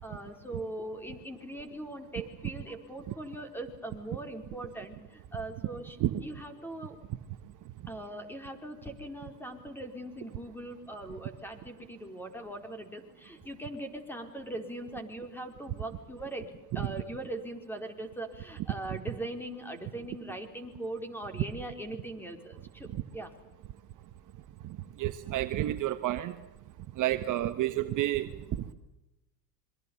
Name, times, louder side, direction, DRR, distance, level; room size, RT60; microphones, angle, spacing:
voice 1, 0.0-7.0 7.9-23.3, right 1 dB, 5° left, 7 dB, 4.4 m, -40 dB
voice 2, 24.6-26.3 27.0-28.7, right 14 dB, 40° right, 9 dB, 1.4 m, -30 dB
27.0 x 23.5 x 7.1 m, 0.96 s
hypercardioid pair, 110°, 49 cm